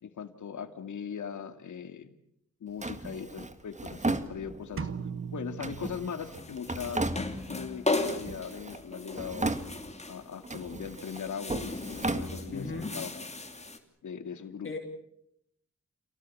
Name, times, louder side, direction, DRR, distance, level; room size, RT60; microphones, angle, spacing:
voice 1, 0.0-2.1 2.6-4.9 5.3-7.0 7.5-9.5 10.1-13.1 14.0-14.7, left 7 dB, 90° left, 8 dB, 2.3 m, -39 dB
Drawer open or close, 2.8-4.9 5.6-7.7 8.0-8.8 9.1-10.1 10.4-12.9, right 2 dB, 25° right, 1.9 m, -35 dB
sound 1, 4.8-6.7, right 6 dB, 45° right, 1.5 m, -39 dB
sound 2, 6.3-13.8, left 2 dB, 25° left, 3.1 m, -37 dB
voice 2, 12.5-12.9 14.6-14.8, left 4 dB, 45° left, 2 dB, 3.3 m, -36 dB
28.5 x 18.0 x 8.5 m, 0.76 s
cardioid pair, 80°, 29 cm